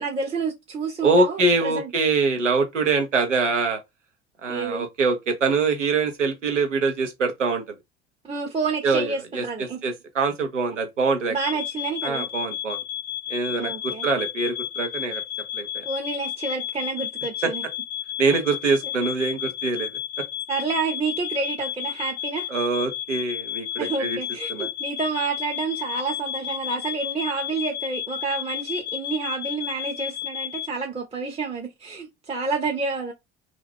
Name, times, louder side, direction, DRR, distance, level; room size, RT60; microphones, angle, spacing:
voice 1, 0.0-1.9 4.5-4.8 8.2-9.8 11.3-12.3 13.6-14.1 15.9-17.6 18.8-18.9 20.5-22.5 23.8-33.1, right 4 dB, 15° right, 0.7 m, -29 dB
voice 2, 1.0-3.8 4.4-7.6 8.8-11.3 12.0-12.8 13.3-15.2 15.5-15.8 17.4-17.5 18.2-19.9 22.5-24.2 24.5-24.7, right 4 dB, 85° right, 0.7 m, -24 dB
sound 1, 11.4-30.7, left 11 dB, 40° left, 0.5 m, -32 dB
2.4 x 2.3 x 3.5 m
figure-of-eight pair, 60°, 36 cm